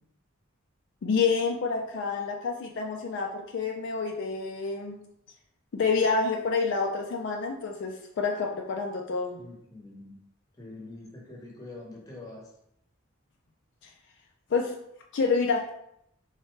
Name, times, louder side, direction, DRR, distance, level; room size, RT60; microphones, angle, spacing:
voice 1, 1.0-5.0 5.7-9.4 14.5-14.7 15.1-15.7, left 4 dB, 60° left, 1 dB, 0.4 m, -28 dB
voice 2, 9.4-10.2 10.6-12.5, left 2 dB, 20° left, -2 dB, 0.9 m, -44 dB
3.6 x 3.2 x 3.1 m, 0.77 s
head